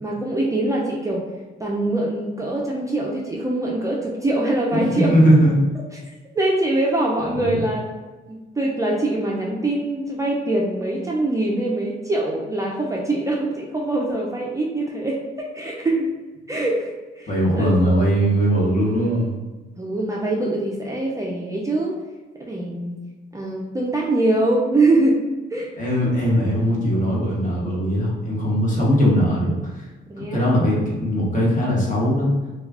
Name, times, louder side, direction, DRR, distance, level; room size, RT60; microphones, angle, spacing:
voice 1, 0.0-1.3 1.6-5.1 6.3-7.9 8.3-16.1 16.5-17.9 19.8-22.0 22.3-23.0 23.3-25.7 30.1-30.5, right 2 dB, 15° right, -3 dB, 0.4 m, -23 dB
voice 2, 4.7-5.5 7.3-7.6 17.3-19.3 25.8-29.8 30.2-32.3, equal, 40° left, -5 dB, 1.0 m, -20 dB
2.3 x 2.2 x 3.4 m, 1.2 s
cardioid pair, 90°, 20 cm